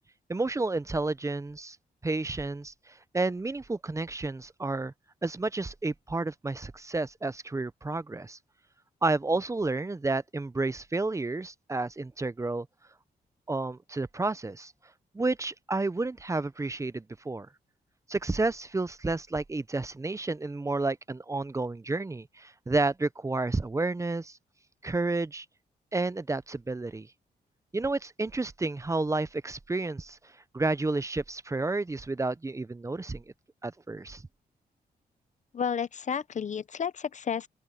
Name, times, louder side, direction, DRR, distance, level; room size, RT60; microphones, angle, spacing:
voice 1, 0.3-1.8 2.0-4.9 5.2-8.4 9.0-12.7 13.5-14.7 15.1-17.5 18.1-24.4 24.8-25.5 25.9-27.1 27.7-30.2 30.5-33.2 33.6-34.2, right 3 dB, 20° right, 0.6 m, -31 dB
voice 2, 35.5-37.5, left 7 dB, 45° left, 0.7 m, -31 dB
open air
cardioid pair, 105°, 17 cm